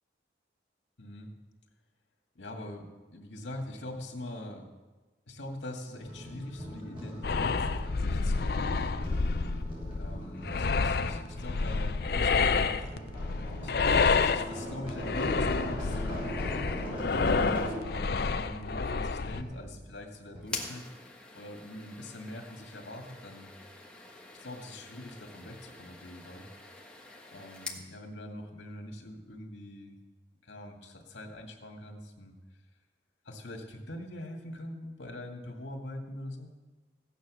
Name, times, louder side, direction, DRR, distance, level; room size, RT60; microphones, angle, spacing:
voice 1, 1.0-1.3 2.3-4.7 5.3-9.1 10.0-13.0 13.6-23.5 24.3-26.5 27.3-30.0 30.4-32.3 33.2-36.5, left 1 dB, 80° left, 2 dB, 2.1 m, -43 dB
sound 1, 6.0-18.0 19.4-20.1 20.4-20.5, equal, 30° right, 6.2 m, -41 dB
sound 2, 7.2-19.4, left 4 dB, 55° left, 0.5 m, -29 dB
sound 3, 20.4-27.9, left 2 dB, 5° left, 1.4 m, -45 dB
15.5 x 9.3 x 6.3 m, 1.2 s
head